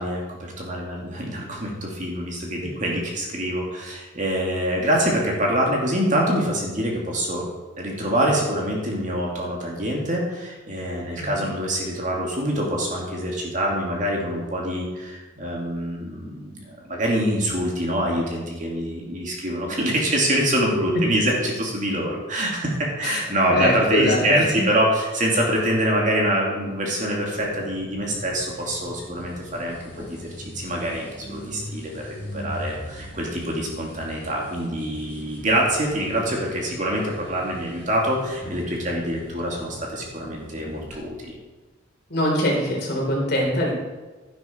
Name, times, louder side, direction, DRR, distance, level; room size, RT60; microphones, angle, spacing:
voice 1, 0.0-7.5 7.8-30.3 30.5-41.3, right 1 dB, 40° right, -2 dB, 2.5 m, -25 dB
voice 2, 23.5-24.6 42.1-43.7, equal, 50° left, -2 dB, 3.8 m, -23 dB
sound 1, 27.4-41.0, equal, 10° left, 4.3 m, -40 dB
11.5 x 11.0 x 4.5 m, 1.3 s
head